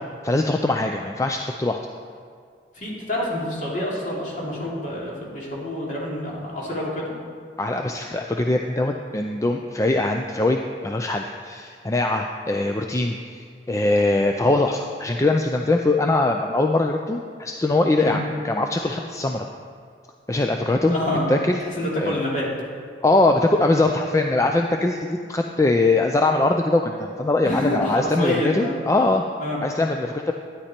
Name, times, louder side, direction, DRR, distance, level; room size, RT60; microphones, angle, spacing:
voice 1, 0.2-1.8 7.6-13.2 13.7-19.5 20.3-21.0 21.3-21.6 22.0-22.2 23.0-29.2 29.6-30.3, left 2 dB, 20° left, 3 dB, 0.4 m, -22 dB
voice 2, 2.7-7.1 18.0-18.1 20.9-21.3 21.6-22.5 27.4-28.7 29.4-29.6, left 1 dB, 45° left, -5 dB, 3.0 m, -27 dB
13.0 x 9.8 x 4.4 m, 2.2 s
head